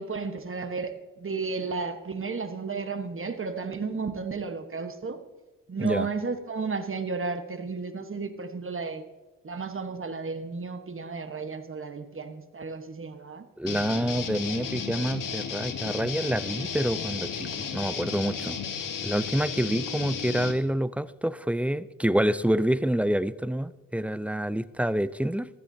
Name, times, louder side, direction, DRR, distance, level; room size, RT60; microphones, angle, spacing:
voice 1, 0.0-5.2 5.7-9.0 9.4-13.5, right 4 dB, 35° right, 8 dB, 1.3 m, -33 dB
voice 2, 13.6-18.6 19.0-25.5, right 1 dB, 5° right, 16 dB, 0.5 m, -27 dB
sound 1, 13.7-20.5, left 6 dB, 65° left, 1.4 m, -34 dB
15.0 x 13.5 x 2.8 m, 1.2 s
cardioid pair, 60°, 35 cm